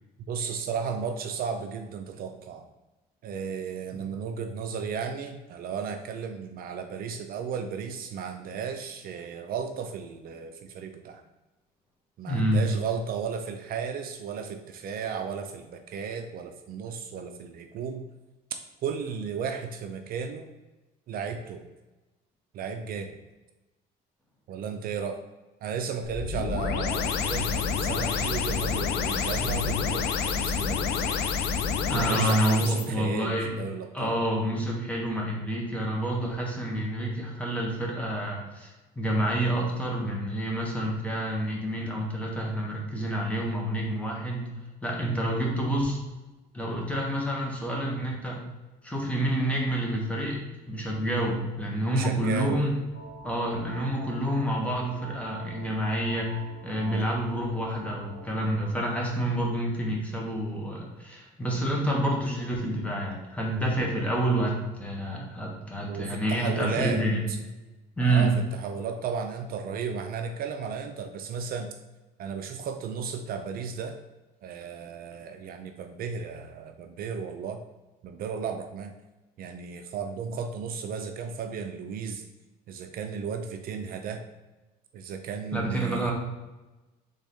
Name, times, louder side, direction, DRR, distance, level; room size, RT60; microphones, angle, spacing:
voice 1, 0.3-2.6 3.2-11.2 12.2-18.1 18.8-20.5 21.1-21.6 22.5-23.2 24.5-25.2 25.6-31.3 31.9-34.2 51.9-52.6 56.8-57.1 65.9-67.0 67.3-67.4 68.0-71.7 72.2-74.0 74.4-77.6 78.0-78.9 79.4-82.2 82.7-84.2 84.9-86.1, right 6 dB, 60° right, 6 dB, 0.4 m, -34 dB
voice 2, 12.3-12.7 31.9-33.5 33.9-44.5 44.8-46.0 46.5-48.4 48.8-50.4 50.7-52.7 53.2-56.3 56.6-67.2 68.0-68.3 85.5-86.1, right 1 dB, 10° left, -2 dB, 1.2 m, -28 dB
sound 1, 26.0-32.8, left 6 dB, 75° left, 0.5 m, -28 dB
sound 2, 52.9-58.6, right 4 dB, 50° left, 1.4 m, -45 dB
4.0 x 3.5 x 3.5 m, 1.1 s
cardioid pair, 110°, 17 cm